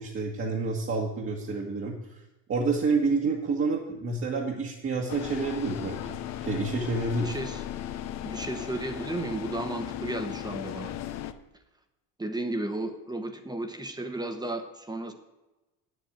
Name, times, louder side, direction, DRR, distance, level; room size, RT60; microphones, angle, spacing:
voice 1, 0.0-2.2 2.5-6.2 6.4-7.4, right 3 dB, 35° right, -1 dB, 1.7 m, -29 dB
sound 1, 5.1-11.3, left 11 dB, 45° left, 0.8 m, -36 dB
voice 2, 7.2-7.6 8.2-10.9 12.2-15.1, right 2 dB, 10° right, 8 dB, 1.2 m, -34 dB
8.6 x 8.1 x 8.8 m, 1.0 s
cardioid pair, 130°, 37 cm